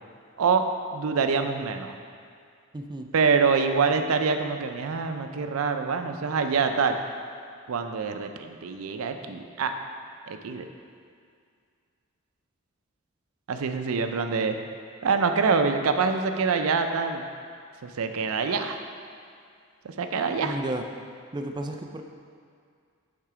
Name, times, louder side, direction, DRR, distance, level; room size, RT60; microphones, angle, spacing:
voice 1, 0.4-1.9 3.1-7.0 7.7-9.7 10.3-10.7 13.5-14.6 15.0-17.2 17.8-18.8 19.8-20.6, right 5 dB, 85° right, 7 dB, 0.5 m, -25 dB
voice 2, 2.7-3.1 20.4-20.8 21.3-22.0, right 1 dB, 20° right, 4 dB, 0.3 m, -32 dB
8.8 x 3.7 x 4.9 m, 2.2 s
head